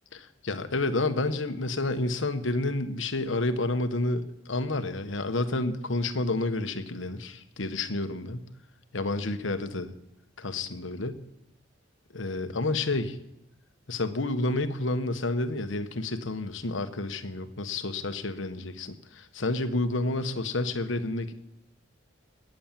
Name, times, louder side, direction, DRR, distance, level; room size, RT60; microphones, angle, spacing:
voice 1, 0.1-8.5 8.9-9.9 10.4-11.2 12.1-13.2 13.9-21.4, left 2 dB, 75° left, 9 dB, 1.2 m, -30 dB
19.5 x 8.8 x 7.5 m, 0.84 s
head